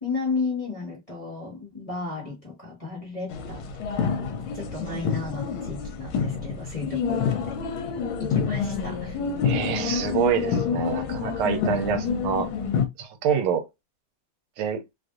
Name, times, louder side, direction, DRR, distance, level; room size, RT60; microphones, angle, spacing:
voice 1, 0.0-4.2 4.5-7.9 8.2-9.2, left 4 dB, 20° left, 1.3 m, -34 dB
sound 1, 3.3-12.9, left 6 dB, 75° left, 1.4 m, -27 dB
voice 2, 9.4-12.5 13.0-13.7 14.6-14.8, right 8 dB, 80° right, 1.5 m, -26 dB
3.4 x 2.6 x 2.4 m
omnidirectional pair, 2.4 m